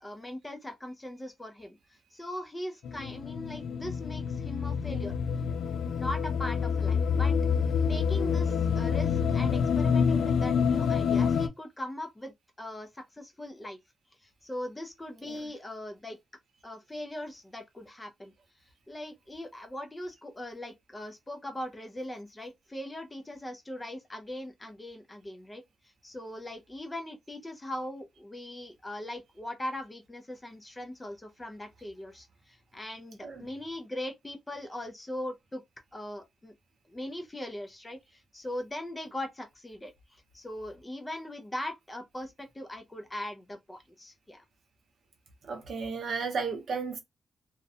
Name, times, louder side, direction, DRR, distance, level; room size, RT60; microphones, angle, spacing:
voice 1, 0.0-5.2 6.0-7.4 7.9-13.8 14.2-16.2 16.6-18.3 18.9-25.6 26.0-35.6 35.9-36.5 36.9-44.5, left 1 dB, 10° left, 0.4 m, -40 dB
sound 1, 2.8-11.5, left 6 dB, 85° left, 0.3 m, -27 dB
voice 2, 45.5-47.0, right 5 dB, 55° right, 0.6 m, -33 dB
2.4 x 2.1 x 2.6 m
wide cardioid pair, 175°, 0 cm